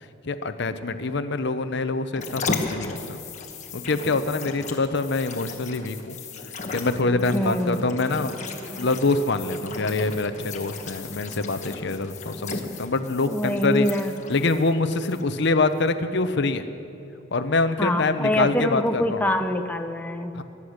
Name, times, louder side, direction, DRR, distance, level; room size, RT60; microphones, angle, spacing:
voice 1, 0.2-3.2 3.7-6.2 6.7-8.3 8.8-13.9 14.3-16.6 17.3-19.2 20.3-20.4, left 3 dB, 60° left, 10 dB, 0.8 m, -25 dB
sound 1, 2.1-15.5 15.9-16.0, left 4 dB, 35° left, 1.4 m, -36 dB
sound 2, 6.9-14.0, right 1 dB, 80° right, 4.5 m, -43 dB
voice 2, 7.3-7.8 13.3-14.1 17.8-20.3, left 1 dB, 10° left, 5 dB, 0.6 m, -24 dB
23.0 x 9.8 x 6.5 m, 2.9 s
head